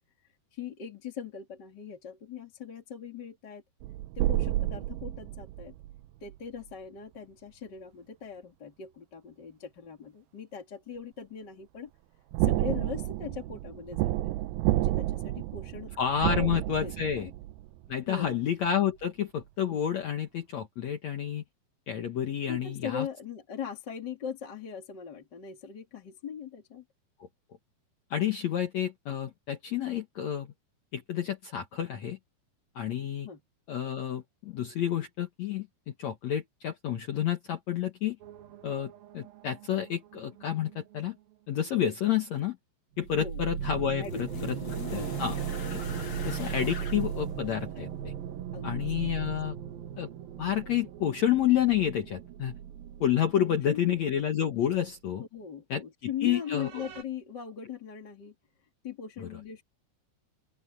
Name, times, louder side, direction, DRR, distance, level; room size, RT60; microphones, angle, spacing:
voice 1, 0.5-3.6 4.2-5.7 6.2-11.9 12.4-14.3 14.8-15.9 16.2-17.3 18.1-18.4 22.5-26.8 33.2-33.4 43.2-43.4 44.0-45.1 48.5-49.2 53.4-53.9 55.2-58.3 58.8-59.6, left 7 dB, 30° left, 2.3 m, -40 dB
sound 1, 3.8-6.4 12.3-17.9 18.3-18.4, right 16 dB, 80° right, 2.3 m, -30 dB
voice 2, 16.0-17.3 17.9-21.4 21.9-23.1 28.1-30.5 30.9-32.2 32.8-33.3 33.7-38.2 38.6-41.2 41.5-42.6 43.0-44.6 44.9-45.4 45.7-45.8 46.2-48.1 48.6-49.6 50.0-50.1 50.4-52.6 53.0-55.2 55.7-55.8 56.2-56.7 59.2-59.3, left 10 dB, 65° left, 1.7 m, -29 dB
sound 2, 38.2-41.0 43.0-54.4 54.7-54.8 56.5-57.0, right 9 dB, 65° right, 3.1 m, -38 dB
sound 3, 43.0-48.2 49.3-49.4, left 7 dB, 50° left, 1.4 m, -44 dB
open air
omnidirectional pair, 4.9 m